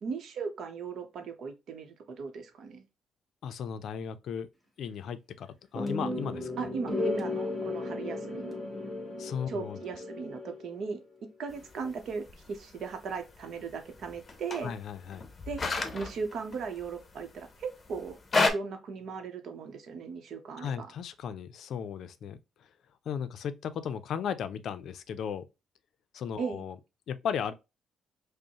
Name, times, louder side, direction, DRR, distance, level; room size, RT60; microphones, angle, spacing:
voice 1, 0.0-2.8 6.6-8.7 9.5-11.0 11.4-14.7 15.5-15.6 15.9-18.2 18.4-20.9 26.4-26.6, right 5 dB, 65° right, 0.7 m, -37 dB
voice 2, 3.4-4.5 4.8-6.5 9.2-9.8 14.6-15.2 20.6-22.4 23.1-25.4 26.1-26.8 27.1-27.5, left 7 dB, 70° left, 0.4 m, -36 dB
sound 1, 5.8-10.9, left 2 dB, 5° right, 1.5 m, -35 dB
sound 2, 11.5-18.5, left 3 dB, 35° left, 0.7 m, -34 dB
5.2 x 2.1 x 2.8 m
cardioid pair, 90°, 0 cm